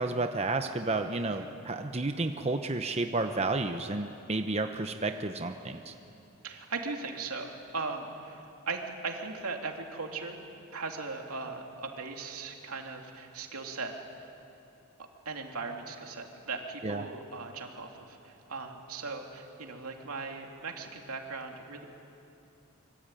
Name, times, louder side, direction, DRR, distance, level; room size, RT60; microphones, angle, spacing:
voice 1, 0.0-5.9 16.8-17.1, right 2 dB, 30° right, 6 dB, 0.9 m, -31 dB
voice 2, 6.4-10.4 10.7-13.9 15.2-21.8, right 4 dB, 85° right, 2 dB, 2.8 m, -38 dB
25.5 x 23.5 x 9.1 m, 2.8 s
head